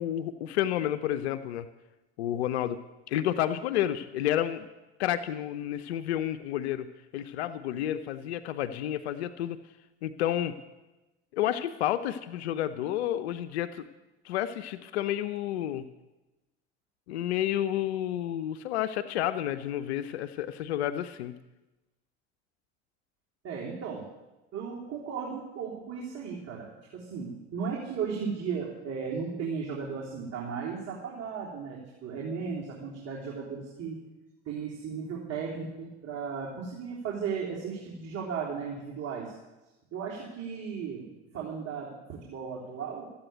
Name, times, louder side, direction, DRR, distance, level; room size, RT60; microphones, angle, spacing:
voice 1, 0.0-1.7 2.2-2.8 3.1-4.7 5.0-6.9 7.1-9.6 10.0-10.6 11.3-13.9 14.2-15.9 17.1-21.4, left 12 dB, 85° left, 11 dB, 0.7 m, -30 dB
voice 2, 23.4-24.1 24.5-34.0 34.5-39.3 39.9-41.1 41.3-43.0, right 6 dB, 50° right, -4 dB, 3.6 m, -35 dB
14.0 x 8.7 x 9.0 m, 1.1 s
hypercardioid pair, 70°, 32 cm